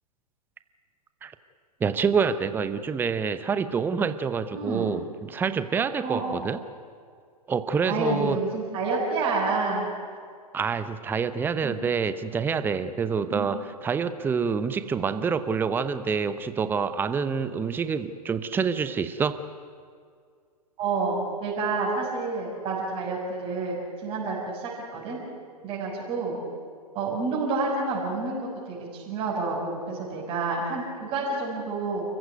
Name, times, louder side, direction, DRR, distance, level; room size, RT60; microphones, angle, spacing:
voice 1, 1.8-6.6 7.5-8.4 10.5-19.4, right 6 dB, 10° right, 13 dB, 0.8 m, -27 dB
voice 2, 4.5-4.9 6.0-6.5 7.9-9.9 11.6-11.8 13.3-13.5 20.8-25.2 25.6-26.4 26.9-32.0, right 3 dB, 25° right, -4 dB, 5.9 m, -29 dB
29.0 x 15.0 x 9.3 m, 2.1 s
figure-of-eight pair, 110°, 21 cm